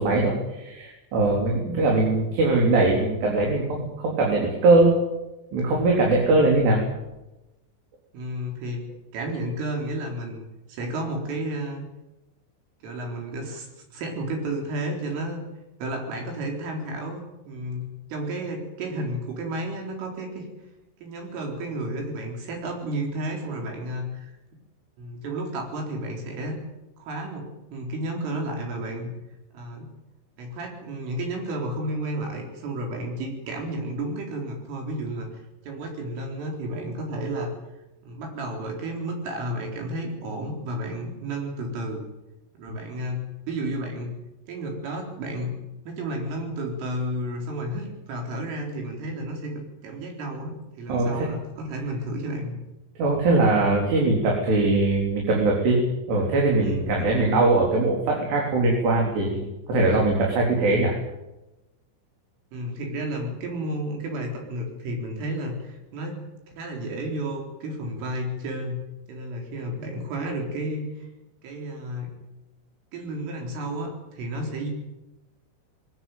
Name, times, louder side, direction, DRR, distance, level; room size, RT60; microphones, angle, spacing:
voice 1, 0.0-5.0 5.5-6.8 50.9-51.3 53.0-55.8 56.1-60.9, right 2 dB, 55° right, -1 dB, 5.5 m, -21 dB
voice 2, 8.1-8.9 9.1-10.4 10.7-11.9 12.8-15.4 15.8-20.5 21.0-24.3 25.0-26.6 27.0-29.1 29.5-29.9 30.4-35.3 35.6-37.5 38.0-42.0 42.5-44.1 44.5-45.6 45.8-49.5 49.8-52.6 56.6-56.9 62.5-66.3 66.6-68.8 69.1-71.1 71.4-72.1 72.9-74.7, right 1 dB, 75° right, 2 dB, 6.6 m, -32 dB
21.5 x 18.0 x 9.2 m, 0.99 s
omnidirectional pair, 5.9 m